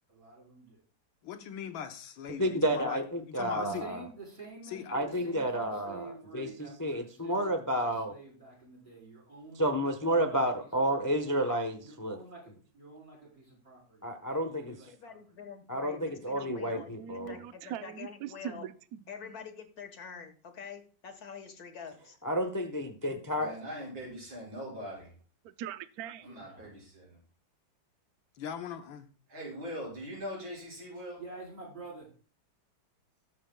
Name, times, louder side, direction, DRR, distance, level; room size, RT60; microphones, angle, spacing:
voice 1, 0.1-0.8 3.6-7.5 7.8-11.0 11.8-15.2 26.2-26.8 31.2-32.1, right 3 dB, 25° right, 4.4 m, -49 dB
voice 2, 1.2-3.8 4.7-5.0 28.3-29.1, left 8 dB, 85° left, 1.8 m, -40 dB
voice 3, 2.4-4.0 4.9-8.1 9.6-12.2 14.0-14.8 15.7-17.4 22.2-23.5, equal, 20° left, 0.5 m, -31 dB
voice 4, 14.9-18.6 19.1-22.2, left 6 dB, 55° left, 1.8 m, -46 dB
voice 5, 16.5-19.4 25.4-26.3, right 10 dB, 65° right, 1.0 m, -42 dB
voice 6, 23.4-25.1 26.2-27.2 29.3-31.2, equal, 85° right, 6.6 m, -41 dB
19.0 x 7.6 x 2.3 m
omnidirectional pair, 2.1 m